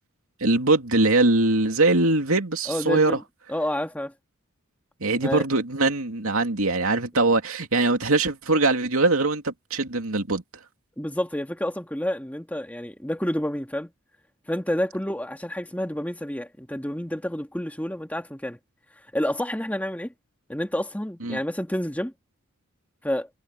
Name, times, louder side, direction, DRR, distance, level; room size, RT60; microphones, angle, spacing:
voice 1, 0.4-3.2 5.0-10.4 21.2-21.4, right 2 dB, 70° right, 2.9 m, -22 dB
voice 2, 2.7-3.2 3.5-4.1 5.2-5.4 11.0-13.9 14.5-18.6 19.1-20.1 20.5-22.1 23.0-23.3, left 1 dB, 5° left, 2.1 m, -29 dB
head